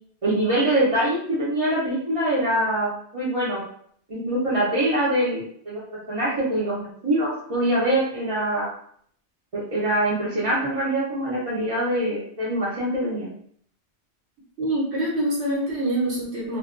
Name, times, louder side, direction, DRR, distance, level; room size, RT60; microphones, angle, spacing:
voice 1, 0.2-3.6 4.1-5.8 6.1-8.7 9.5-13.3, right 1 dB, 35° right, -9 dB, 0.6 m, -24 dB
voice 2, 14.6-16.6, right 1 dB, 75° right, -6 dB, 1.1 m, -25 dB
2.6 x 2.2 x 2.4 m, 0.63 s
omnidirectional pair, 1.2 m